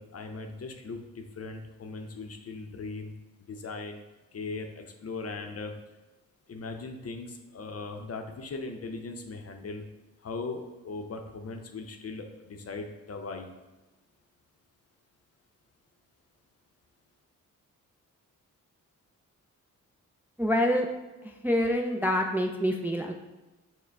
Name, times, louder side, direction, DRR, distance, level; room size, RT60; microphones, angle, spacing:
voice 1, 0.0-3.1 3.5-4.0 4.3-5.7 6.5-9.9 10.2-13.5, left 3 dB, 45° left, 4 dB, 0.7 m, -39 dB
voice 2, 20.4-20.9 21.2-23.1, equal, 5° right, 2 dB, 0.4 m, -26 dB
6.2 x 2.2 x 3.4 m, 1.1 s
supercardioid pair, 50°, 35 cm